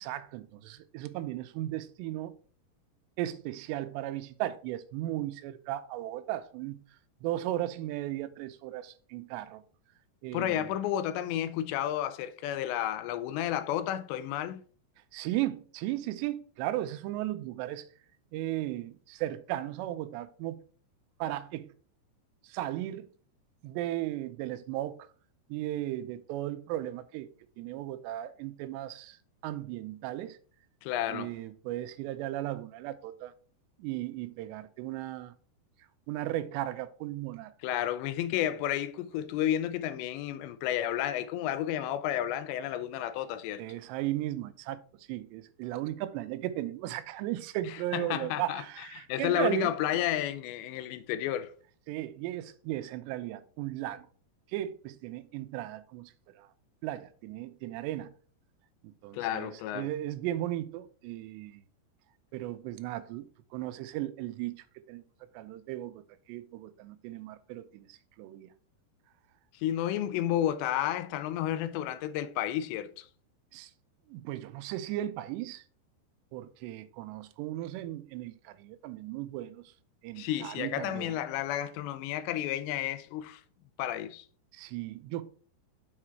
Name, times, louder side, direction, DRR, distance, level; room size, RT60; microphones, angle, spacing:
voice 1, 0.0-2.3 3.2-6.8 7.2-9.6 10.2-10.7 15.1-17.8 18.3-20.6 21.2-21.7 22.4-23.1 23.6-25.0 25.5-27.3 27.6-29.2 29.4-30.4 31.1-33.3 33.8-35.3 36.1-37.5 43.6-44.8 45.1-49.7 51.9-54.1 54.5-56.5 56.8-58.1 59.0-61.6 62.3-63.3 63.5-65.0 65.3-66.0 66.3-68.5 73.5-73.7 74.1-75.6 76.3-79.7 80.0-81.2 84.5-85.2, right 14 dB, 85° right, 2.8 m, -36 dB
voice 2, 10.3-14.6 30.8-31.3 37.6-43.6 47.9-48.6 49.0-51.5 59.1-59.9 69.6-73.1 80.2-83.4 83.8-84.2, left 11 dB, 90° left, 2.8 m, -31 dB
6.9 x 4.8 x 4.4 m
omnidirectional pair, 4.9 m